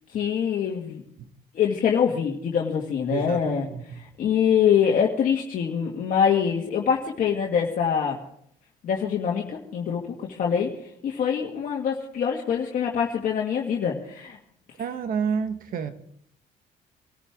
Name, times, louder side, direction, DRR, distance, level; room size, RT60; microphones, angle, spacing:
voice 1, 0.1-1.0 1.5-3.7 3.9-8.2 8.8-10.7 11.0-14.4, left 7 dB, 55° left, -1 dB, 2.0 m, -24 dB
voice 2, 3.1-3.8 14.8-15.9, right 6 dB, 55° right, 9 dB, 1.3 m, -29 dB
24.0 x 14.0 x 3.7 m, 0.67 s
cardioid pair, 110°, 17 cm